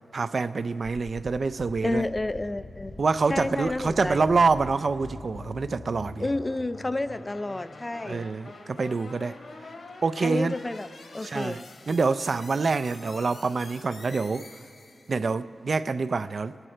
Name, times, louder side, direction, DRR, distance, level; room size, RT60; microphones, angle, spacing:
voice 1, 0.1-2.1 3.0-6.3 8.1-9.4 10.0-10.5 11.2-14.5 15.1-16.7, right 4 dB, 50° right, 0.3 m, -26 dB
sound 1, 1.0-15.2, left 2 dB, 70° left, 1.4 m, -45 dB
voice 2, 1.8-2.9 3.3-4.3 6.2-8.3 10.2-10.9 11.1-11.6, left 2 dB, 20° left, 0.3 m, -30 dB
25.5 x 11.5 x 4.4 m
wide cardioid pair, 135°, 0 cm